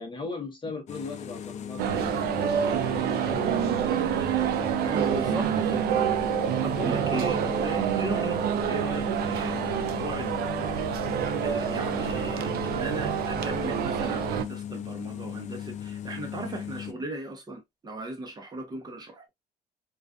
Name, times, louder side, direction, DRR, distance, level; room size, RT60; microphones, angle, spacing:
voice 1, 0.0-4.2 5.1-5.4, left 4 dB, 30° left, 0.8 m, -39 dB
sound 1, 0.9-16.9, left 9 dB, 45° left, 0.4 m, -37 dB
sound 2, 1.8-14.5, right 10 dB, 70° right, 0.4 m, -27 dB
voice 2, 4.8-5.9 6.6-8.4 8.7-11.1 11.4-19.3, right 1 dB, 25° right, 0.8 m, -37 dB
2.4 x 2.4 x 2.2 m
cardioid pair, 110°, 17 cm